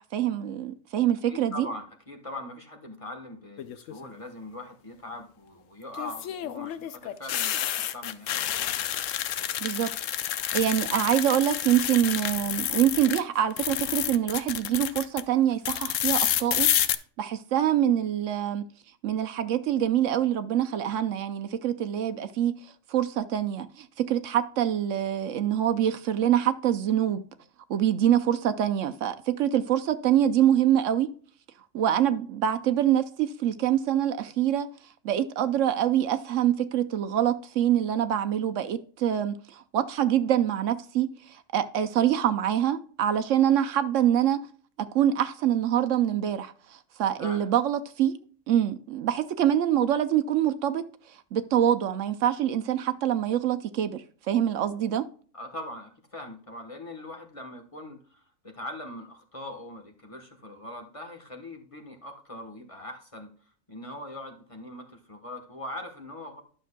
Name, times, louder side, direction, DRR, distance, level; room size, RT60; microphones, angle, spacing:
voice 1, 0.0-1.7 9.6-9.9 10.5-16.7 17.2-18.6 19.0-22.6 22.9-27.2 27.7-31.1 31.7-34.7 35.0-44.5 44.9-48.2 48.5-50.8 51.1-55.0, right 10 dB, 70° right, 0.9 m, -25 dB
voice 2, 1.3-8.5 47.2-47.5 55.3-63.3 63.7-66.4, left 1 dB, 25° left, 1.2 m, -41 dB
sound 1, 3.6-4.1 5.9-13.2 13.5-15.2 15.7-17.0, left 11 dB, 75° left, 0.9 m, -29 dB
12.0 x 6.6 x 2.2 m
omnidirectional pair, 1.4 m